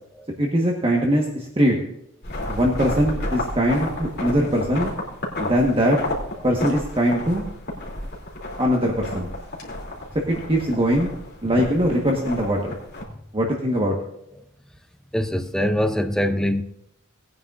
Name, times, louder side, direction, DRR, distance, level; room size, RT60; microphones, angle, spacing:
voice 1, 0.4-1.8 2.5-4.9 5.4-6.0 6.4-7.4 8.6-9.3 10.3-11.1 11.4-12.7 13.3-14.0, equal, 25° right, 1.3 m, -21 dB
sound 1, 2.2-13.0, left 1 dB, 50° left, 2.9 m, -32 dB
voice 2, 15.1-16.6, equal, 5° left, 0.5 m, -23 dB
19.0 x 9.4 x 2.5 m
head